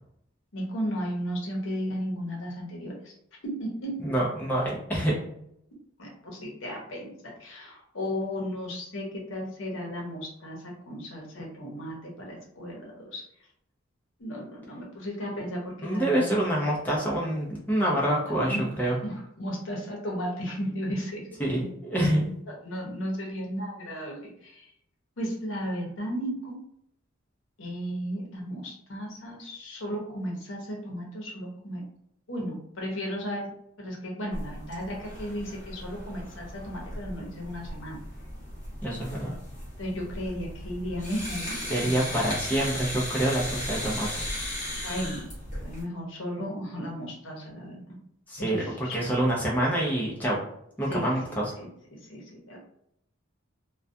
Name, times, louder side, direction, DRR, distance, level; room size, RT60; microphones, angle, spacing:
voice 1, 0.5-3.1 3.4-4.1 6.0-13.2 14.2-16.4 18.5-18.7 19.0-21.2 22.6-24.7 25.2-26.6 27.6-31.8 32.3-33.5 33.8-38.0 39.8-41.6 41.8-42.2 44.8-45.3 45.6-48.0 48.4-49.1 50.9-51.7 52.0-52.6, equal, 70° left, -1 dB, 0.8 m, -35 dB
voice 2, 4.0-5.1 15.8-19.0 21.4-22.3 38.8-39.4 41.7-44.2 48.3-50.4 50.8-51.6, right 1 dB, 10° left, -5 dB, 0.5 m, -26 dB
sound 1, 34.3-45.8, left 1 dB, 40° left, 1.0 m, -37 dB
2.3 x 2.2 x 2.6 m, 0.73 s
head